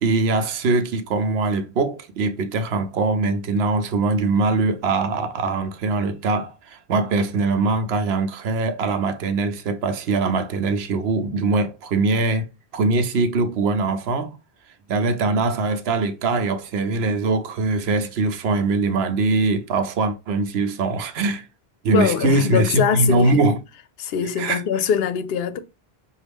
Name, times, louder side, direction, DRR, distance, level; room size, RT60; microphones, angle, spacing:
voice 1, 0.0-12.5 12.7-14.3 14.9-21.5 21.8-23.6 24.4-24.6, right 3 dB, 85° right, 0.9 m, -22 dB
voice 2, 21.9-23.3 24.0-25.6, left 7 dB, 75° left, 0.8 m, -22 dB
5.8 x 2.4 x 3.4 m
omnidirectional pair, 1.0 m